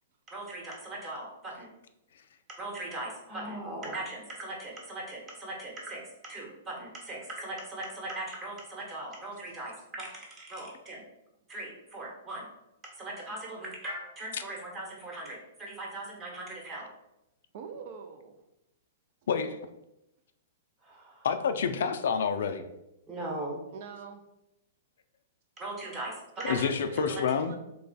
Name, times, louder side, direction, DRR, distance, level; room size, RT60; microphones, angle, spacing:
voice 1, 0.3-1.7 2.6-6.0 6.3-11.0 11.5-12.5 13.0-16.9 20.8-21.3 23.1-23.6 25.6-26.7 27.1-27.2, right 1 dB, 25° right, -2 dB, 1.1 m, -39 dB
voice 2, 9.4-9.7 17.5-18.4 23.7-24.2 26.4-27.6, right 5 dB, 55° right, 5 dB, 0.4 m, -44 dB
voice 3, 19.3-19.6 21.2-22.6 26.4-27.5, left 6 dB, 75° left, 9 dB, 0.3 m, -28 dB
3.2 x 2.3 x 4.0 m, 0.89 s
hypercardioid pair, 140°, 0 cm